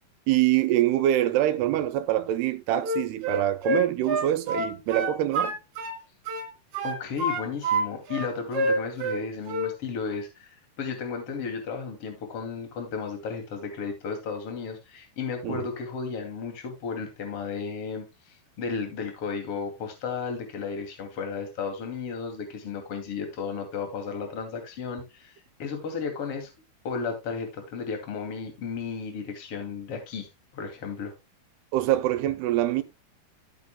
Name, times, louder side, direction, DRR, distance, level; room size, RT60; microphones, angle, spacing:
voice 1, 0.3-5.5 15.4-15.6 31.7-32.8, right 13 dB, 80° right, 2.6 m, -24 dB
Wind instrument woodwind instrument, 2.8-6.0 6.3-7.8 8.1-9.2 9.5-9.8, right 1 dB, 50° right, 2.8 m, -27 dB
voice 2, 6.8-26.5 26.8-30.3 30.5-31.1, left 5 dB, 40° left, 2.9 m, -34 dB
14.0 x 8.2 x 2.2 m
omnidirectional pair, 4.8 m